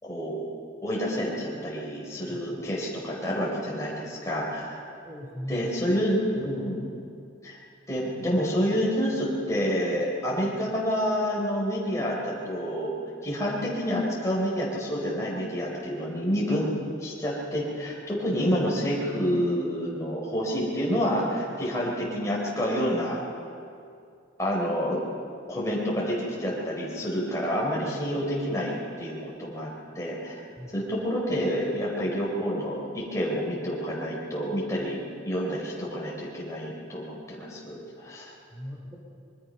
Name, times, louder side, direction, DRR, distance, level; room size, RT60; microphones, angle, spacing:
voice 1, 0.0-0.4 0.8-4.8 5.5-6.9 7.4-7.6 7.9-12.9 13.2-16.7 17.0-23.2 24.4-25.0 25.5-30.4 30.7-38.3, equal, 15° left, -5 dB, 4.4 m, -28 dB
voice 2, 2.2-2.6 5.0-5.6 30.6-30.7 38.5-39.0, equal, 15° right, -1 dB, 3.6 m, -39 dB
25.5 x 22.5 x 5.5 m, 2.5 s
head